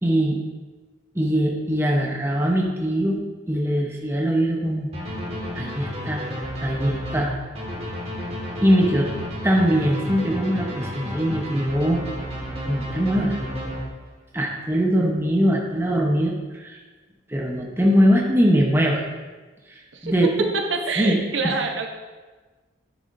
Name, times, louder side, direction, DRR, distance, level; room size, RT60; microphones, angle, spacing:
voice 1, 0.0-0.4 1.1-3.2 3.5-4.9 5.5-6.3 6.6-7.3 8.6-9.1 9.4-12.0 12.7-13.4 14.3-16.8 17.3-19.1 19.7-20.5 21.0-21.2 21.4-21.6, equal, 15° right, 0 dB, 0.8 m, -21 dB
sound 1, 4.9-14.2, equal, 35° right, 1.6 m, -32 dB
voice 2, 20.9-21.9, right 4 dB, 75° right, 3 dB, 0.8 m, -26 dB
10.0 x 7.0 x 2.6 m, 1.3 s
head